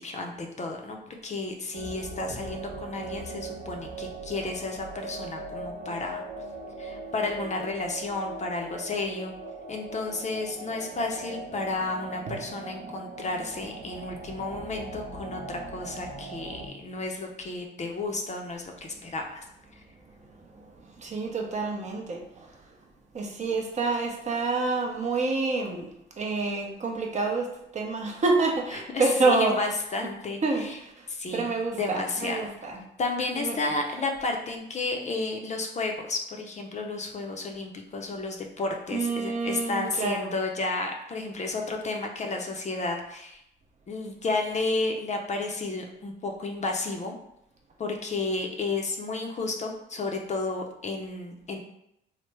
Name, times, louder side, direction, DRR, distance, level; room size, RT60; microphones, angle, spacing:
voice 1, 0.0-6.2 6.8-9.3 9.7-19.4 19.7-19.8 28.9-30.8 31.1-32.5 33.0-43.4 43.9-47.2 47.8-51.6, left 3 dB, 35° left, 2 dB, 0.5 m, -32 dB
sound 1, 1.7-16.7, right 3 dB, 85° right, 0.7 m, -40 dB
voice 2, 21.0-22.2 23.1-25.9 26.2-27.5 27.7-29.5 30.4-31.0 31.3-32.8 33.3-33.6 38.9-40.3, right 3 dB, 35° right, 1 dB, 0.6 m, -27 dB
3.2 x 2.0 x 3.2 m, 0.80 s
cardioid pair, 90°, 20 cm